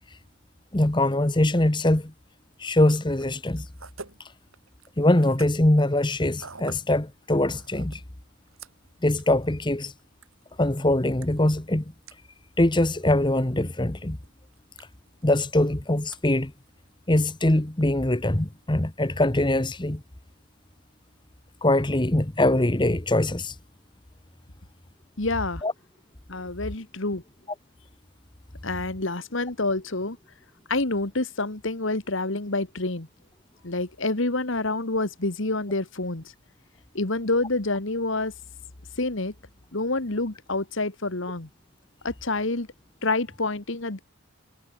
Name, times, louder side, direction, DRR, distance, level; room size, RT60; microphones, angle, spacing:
voice 1, 0.7-2.1 2.6-3.7 5.0-8.0 9.0-9.9 10.6-11.8 12.6-14.2 15.2-16.5 17.1-20.0 21.6-23.5 25.6-25.7, left 1 dB, 20° left, 1.1 m, -22 dB
sound 1, 2.5-19.1, right 4 dB, 75° right, 7.1 m, -52 dB
voice 2, 25.2-25.6 26.3-27.2 28.6-30.2 30.7-33.1 33.6-36.2 36.9-38.3 39.0-39.3 39.7-41.5 42.0-42.7 43.0-44.0, left 2 dB, 60° left, 1.8 m, -27 dB
head